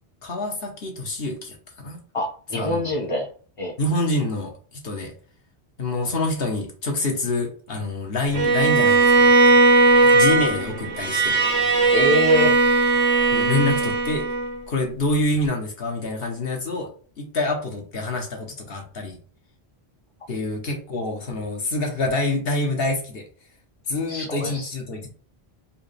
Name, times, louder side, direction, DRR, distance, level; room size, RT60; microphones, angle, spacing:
voice 1, 0.2-2.0 2.5-2.9 3.8-5.1 5.8-9.3 10.0-11.4 13.3-14.3 14.7-16.9 17.2-19.2 20.3-23.3 23.9-25.1, left 2 dB, 65° left, 1 dB, 1.1 m, -26 dB
voice 2, 2.1-3.3 3.6-3.7 11.9-12.6 24.1-24.7, left 2 dB, 35° left, 1 dB, 0.8 m, -24 dB
Bowed string instrument, 8.3-14.6, right 3 dB, 50° right, 0.9 m, -18 dB
4.7 x 2.2 x 3.3 m, 0.43 s
omnidirectional pair, 1.1 m